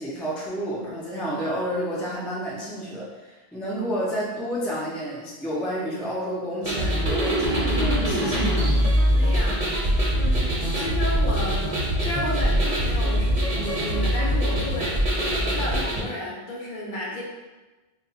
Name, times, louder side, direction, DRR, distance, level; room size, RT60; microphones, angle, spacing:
voice 1, 0.0-8.7, equal, ahead, -6 dB, 0.4 m, -30 dB
sound 1, 6.6-16.0, equal, 40° right, 0.8 m, -23 dB
voice 2, 9.1-9.7 10.1-11.7 12.0-15.0 15.3-17.2, left 1 dB, 60° left, -4 dB, 0.7 m, -32 dB
2.3 x 2.2 x 3.9 m, 1.2 s
omnidirectional pair, 1.0 m